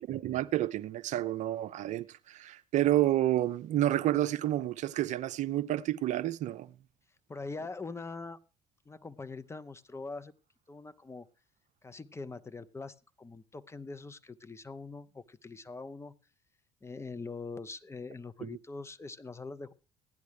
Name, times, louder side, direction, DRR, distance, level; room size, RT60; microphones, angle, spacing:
voice 1, 0.0-6.7 18.4-18.5, right 14 dB, 45° right, 0.5 m, -30 dB
voice 2, 7.3-8.4 8.9-10.3 10.7-11.3 11.8-16.2 16.8-19.7, left 3 dB, 15° left, 0.6 m, -43 dB
16.0 x 10.5 x 3.3 m
figure-of-eight pair, 55°, 16 cm